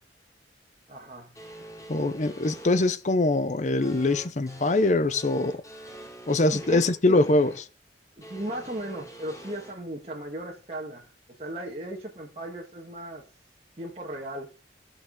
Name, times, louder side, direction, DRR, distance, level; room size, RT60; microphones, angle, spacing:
voice 1, 0.9-1.3 6.5-7.2 8.2-11.1 11.4-13.3 13.8-14.5, right 1 dB, 35° right, 1.7 m, -36 dB
sound 1, 1.3-2.9 3.8-7.6 8.2-9.7, right 1 dB, 20° left, 6.0 m, -45 dB
voice 2, 1.9-5.6 6.3-7.7, left 2 dB, 40° left, 0.7 m, -23 dB
16.5 x 6.2 x 3.7 m
head